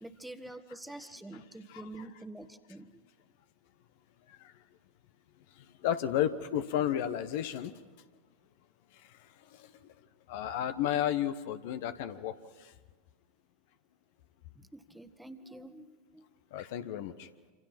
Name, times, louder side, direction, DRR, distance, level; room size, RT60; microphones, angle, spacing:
voice 1, 0.0-3.0 14.5-16.4, right 2 dB, 5° right, 9 dB, 1.5 m, -47 dB
voice 2, 1.7-2.0 4.3-4.5 5.5-7.8 8.9-9.9 10.3-12.7 16.5-17.3, left 10 dB, 60° left, 10 dB, 1.1 m, -33 dB
27.0 x 27.0 x 5.9 m, 1.5 s
figure-of-eight pair, 90°, 0 cm